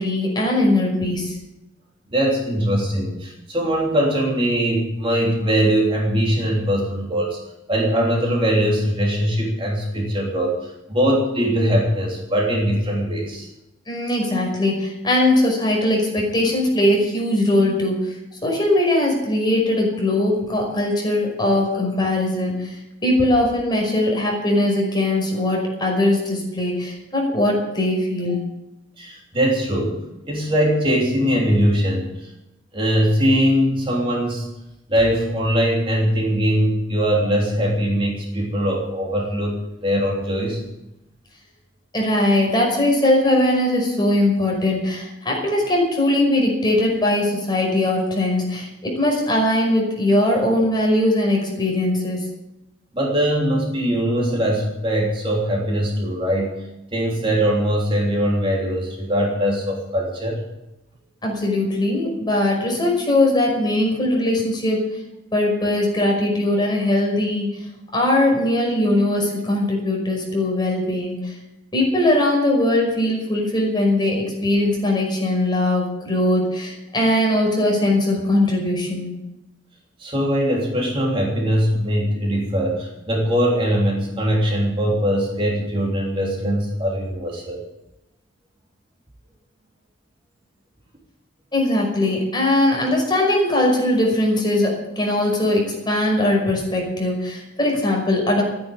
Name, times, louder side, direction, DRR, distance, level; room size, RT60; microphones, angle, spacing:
voice 1, 0.0-1.4 13.9-18.2 18.4-22.8 23.0-28.4 41.9-52.2 61.2-65.0 65.3-67.7 67.9-71.3 71.7-79.1 91.5-98.4, left 1 dB, 25° left, 0 dB, 5.5 m, -20 dB
voice 2, 2.1-7.4 7.7-13.5 29.0-30.0 30.3-32.3 32.7-34.5 34.9-40.6 52.9-56.6 56.9-60.4 80.0-87.6, equal, 30° right, -2 dB, 3.3 m, -21 dB
14.5 x 9.9 x 8.4 m, 0.93 s
head